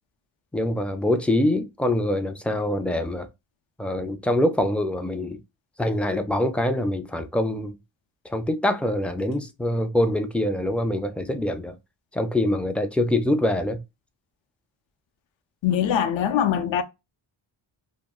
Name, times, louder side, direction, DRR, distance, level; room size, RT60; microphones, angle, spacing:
voice 1, 0.5-3.3 3.8-5.4 5.8-7.8 8.3-11.8 12.1-13.8, left 1 dB, 5° left, 0.3 m, -24 dB
voice 2, 15.6-16.8, left 9 dB, 65° left, 0.6 m, -22 dB
2.3 x 2.1 x 3.6 m
cardioid pair, 65°, 49 cm